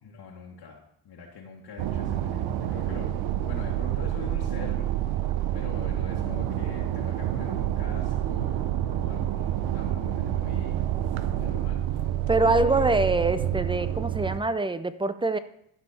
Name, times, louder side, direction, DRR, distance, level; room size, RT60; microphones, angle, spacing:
voice 1, 0.0-3.1 3.4-4.9 5.5-10.8 11.3-11.8 12.7-13.0, left 5 dB, 60° left, -3 dB, 1.7 m, -43 dB
sound 1, 1.8-14.4, right 12 dB, 85° right, 0.8 m, -28 dB
voice 2, 12.3-15.4, right 2 dB, 10° right, 13 dB, 0.4 m, -24 dB
12.5 x 5.5 x 4.2 m, 0.74 s
cardioid pair, 80°, 46 cm